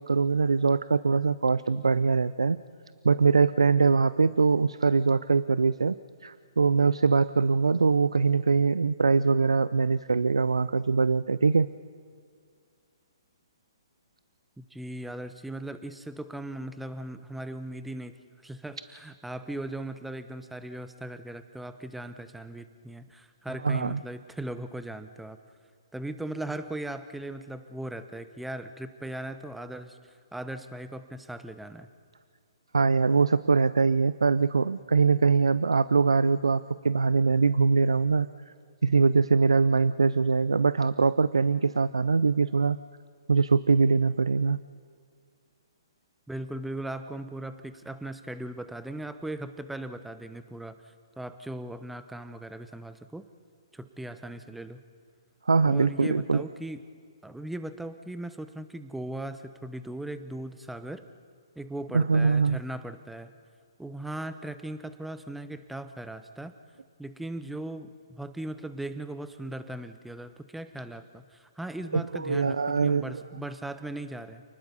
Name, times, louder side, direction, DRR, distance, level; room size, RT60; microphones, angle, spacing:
voice 1, 0.0-2.6 3.0-6.0 6.2-11.7 23.6-24.0 32.7-38.3 38.8-42.8 43.3-44.6 55.5-56.4 61.9-62.6 71.9-73.2, right 4 dB, 85° right, 17 dB, 0.5 m, -23 dB
voice 2, 14.6-18.2 18.4-25.4 25.9-31.9 46.3-53.3 53.7-54.8 55.6-56.8 57.2-61.1 61.6-63.3 63.8-66.5 67.0-74.4, right 1 dB, 5° right, 11 dB, 0.9 m, -38 dB
28.5 x 20.0 x 5.4 m, 2.2 s
hypercardioid pair, 135°, 3 cm